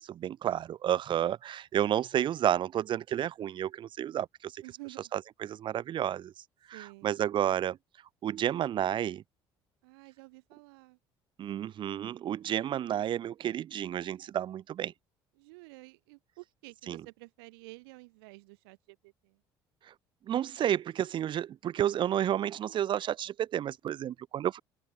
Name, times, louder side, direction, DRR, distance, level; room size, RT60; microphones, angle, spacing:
voice 1, 0.0-4.6 5.1-6.3 6.7-7.8 8.2-9.2 11.4-14.9 16.9-17.0 20.3-24.6, right 10 dB, 40° right, 0.4 m, -31 dB
voice 2, 4.6-5.1 6.7-7.2 9.8-11.0 15.4-19.4, right 26 dB, 70° right, 4.6 m, -51 dB
open air
figure-of-eight pair, 55°, 13 cm